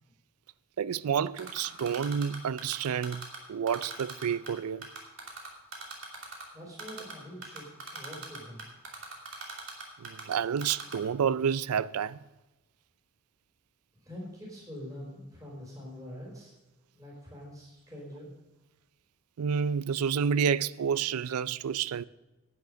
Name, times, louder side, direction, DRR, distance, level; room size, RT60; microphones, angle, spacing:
voice 1, 0.8-4.9 10.0-12.2 19.4-22.0, right 7 dB, 90° right, 0.4 m, -29 dB
Typing, 1.4-3.4 3.7-4.5 4.8-6.4 6.8-7.1 7.4-10.3 10.6-11.0, right 4 dB, 60° right, 2.8 m, -40 dB
voice 2, 6.5-7.7 7.9-8.7 14.0-16.5 16.9-18.3, equal, 15° right, 4.2 m, -44 dB
10.5 x 9.4 x 6.3 m
head